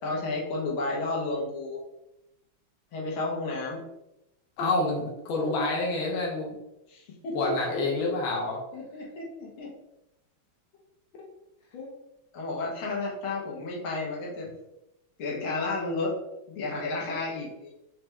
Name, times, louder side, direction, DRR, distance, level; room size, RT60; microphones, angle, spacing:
voice 1, 0.0-1.8 2.9-3.8 6.9-7.5 8.7-9.7 12.3-14.5 15.2-16.2 16.5-17.7, left 3 dB, 90° left, -3 dB, 2.1 m, -32 dB
voice 2, 4.6-6.6 7.3-8.6 11.7-11.9, left 2 dB, 75° left, -2 dB, 1.6 m, -28 dB
5.0 x 3.1 x 3.4 m, 0.90 s
omnidirectional pair, 2.3 m